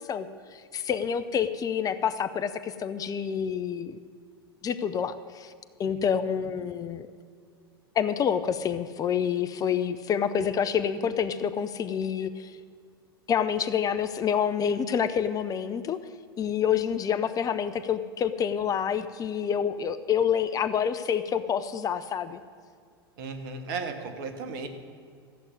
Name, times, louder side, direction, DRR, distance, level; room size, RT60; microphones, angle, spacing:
voice 1, 0.0-4.0 4.6-5.5 5.8-7.1 7.9-12.6 13.3-16.0 16.4-22.4, left 8 dB, 30° left, 12 dB, 0.7 m, -28 dB
voice 2, 23.2-24.7, right 4 dB, 60° right, 7 dB, 1.9 m, -35 dB
14.0 x 8.1 x 9.7 m, 2.2 s
figure-of-eight pair, 90°, 13 cm